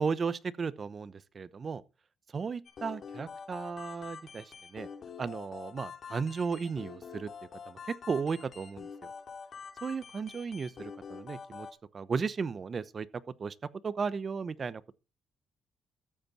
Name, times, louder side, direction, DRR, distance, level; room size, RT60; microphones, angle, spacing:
voice 1, 0.0-1.8 2.3-4.9 5.2-7.3 7.7-8.9 9.8-11.7 11.9-13.1 13.4-13.5 13.8-14.8, right 5 dB, 40° right, 0.8 m, -35 dB
sound 1, 2.7-11.7, left 6 dB, 55° left, 3.2 m, -46 dB
13.5 x 8.0 x 4.2 m
cardioid pair, 90°, 0 cm